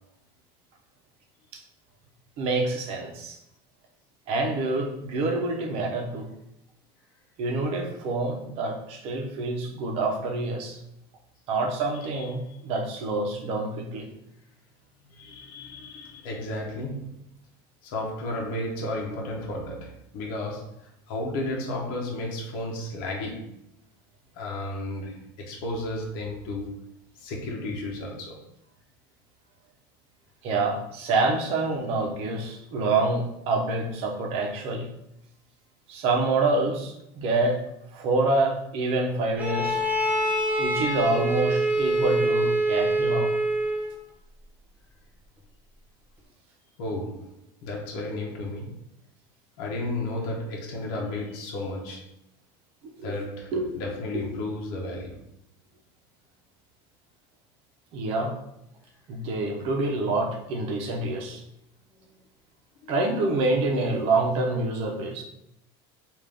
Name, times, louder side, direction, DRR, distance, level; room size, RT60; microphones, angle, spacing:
voice 1, 2.4-3.4 4.3-6.3 7.4-10.8 11.5-14.1 30.4-34.9 35.9-37.6 37.9-39.8 40.6-43.3 53.0-53.1 53.5-53.7 54.1-54.2 57.9-58.3 59.1-61.4 62.9-65.2, right 2 dB, 55° right, 2 dB, 0.8 m, -27 dB
voice 2, 15.1-17.2 17.8-23.5 24.3-26.8 27.2-28.4 46.8-47.3 47.6-48.8 49.6-52.1 53.0-55.2 62.0-62.1 62.8-62.9, left 1 dB, 70° left, -1 dB, 0.9 m, -33 dB
Bowed string instrument, 39.4-44.0, right 1 dB, 10° right, 0.6 m, -25 dB
3.8 x 2.6 x 3.4 m, 0.79 s
supercardioid pair, 130°, 12 cm